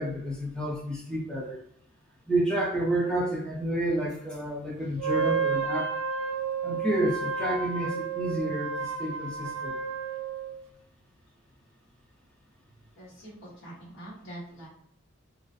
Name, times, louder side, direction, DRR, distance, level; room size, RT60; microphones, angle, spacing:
voice 1, 0.0-1.6 2.3-5.9 6.6-9.7, right 1 dB, 5° left, -3 dB, 0.5 m, -30 dB
Wind instrument woodwind instrument, 5.0-10.6, right 6 dB, 65° right, 0.3 m, -31 dB
voice 2, 13.0-14.7, right 1 dB, 55° left, -8 dB, 1.1 m, -44 dB
2.4 x 2.1 x 2.5 m, 0.67 s
head